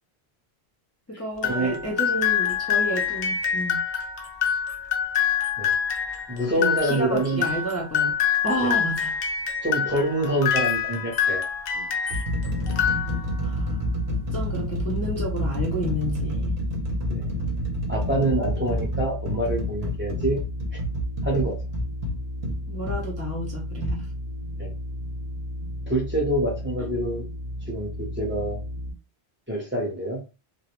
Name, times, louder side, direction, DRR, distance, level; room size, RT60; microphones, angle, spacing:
voice 1, 1.1-3.8 6.6-8.2 8.4-9.2 13.4-13.8 14.3-16.6 22.7-24.1 26.8-26.9, equal, 25° left, 0.3 m, -30 dB
sound 1, 1.4-12.3 12.7-13.5, left 8 dB, 85° left, 0.9 m, -26 dB
voice 2, 6.3-7.5 8.6-8.8 9.6-11.5 17.1-17.3 17.9-20.5 20.7-20.8 21.2-21.6 24.6-24.7 25.9-27.2 27.7-28.6 29.5-30.2, right 1 dB, 10° right, 0.7 m, -26 dB
sound 2, 9.8-10.1 10.9-11.1 11.7-23.0 23.8-24.0, equal, 65° right, 0.8 m, -29 dB
sound 3, 12.6-28.9, equal, 40° left, 0.7 m, -34 dB
2.4 x 2.0 x 2.9 m
omnidirectional pair, 1.1 m